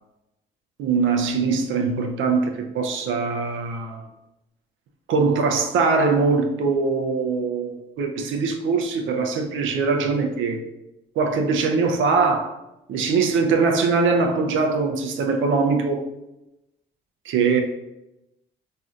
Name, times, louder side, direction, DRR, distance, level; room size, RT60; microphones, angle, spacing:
voice 1, 0.8-4.0 5.1-10.6 11.2-12.5 12.9-16.0 17.3-17.6, right 4 dB, 75° right, 0.5 m, -22 dB
3.2 x 2.6 x 2.4 m
cardioid pair, 90°, 20 cm